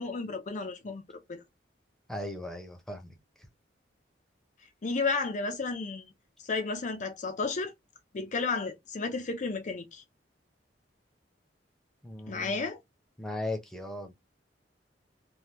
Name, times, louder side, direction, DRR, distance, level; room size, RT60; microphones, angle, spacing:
voice 1, 0.0-1.4 4.8-6.1 6.4-7.7 8.1-10.0 12.3-12.8, left 4 dB, 45° left, 0.5 m, -32 dB
voice 2, 2.1-3.2 12.0-12.7 13.2-14.1, left 1 dB, 5° left, 0.8 m, -37 dB
3.4 x 2.2 x 2.8 m
head